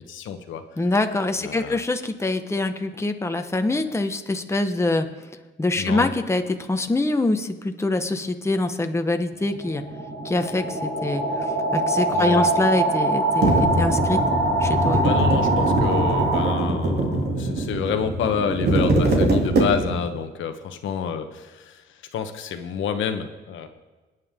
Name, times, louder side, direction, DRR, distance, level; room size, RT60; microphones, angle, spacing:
voice 1, 0.1-0.6 1.4-1.8 5.8-6.1 12.1-12.5 15.0-23.7, left 7 dB, 75° left, 7 dB, 1.1 m, -28 dB
voice 2, 0.8-5.1 5.6-9.8 10.2-14.2 14.6-15.0, left 2 dB, 15° left, 6 dB, 1.1 m, -24 dB
sound 1, 9.3-17.1, right 2 dB, 90° right, 3.9 m, -24 dB
sound 2, 13.4-20.1, right 2 dB, 55° right, 2.7 m, -22 dB
26.5 x 9.4 x 3.7 m, 1.2 s
cardioid pair, 90°, 20 cm